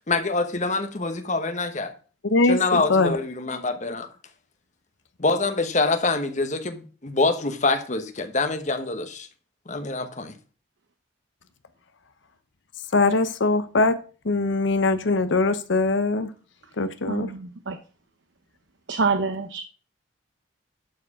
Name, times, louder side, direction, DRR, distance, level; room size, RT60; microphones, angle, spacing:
voice 1, 0.1-1.9 2.5-4.1 5.2-9.3 9.7-10.3, left 3 dB, 35° left, 1.1 m, -25 dB
voice 2, 2.3-3.2 12.9-16.3 16.8-17.3, left 3 dB, 65° left, 0.7 m, -22 dB
voice 3, 17.1-17.8 18.9-19.6, right 4 dB, 65° right, 0.8 m, -26 dB
12.0 x 4.8 x 4.8 m
head